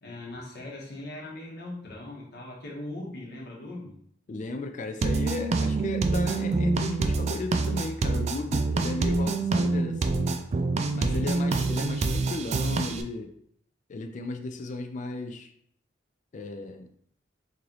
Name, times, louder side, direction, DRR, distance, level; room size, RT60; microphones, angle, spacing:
voice 1, 0.0-3.9 10.8-11.5, left 1 dB, 60° left, -3 dB, 1.1 m, -40 dB
voice 2, 4.3-10.3 10.9-13.3 13.9-15.5 16.3-16.9, left 2 dB, 40° left, 6 dB, 0.3 m, -35 dB
sound 1, 5.0-13.0, right 3 dB, 35° right, 0.3 m, -26 dB
3.2 x 2.9 x 3.8 m, 0.67 s
head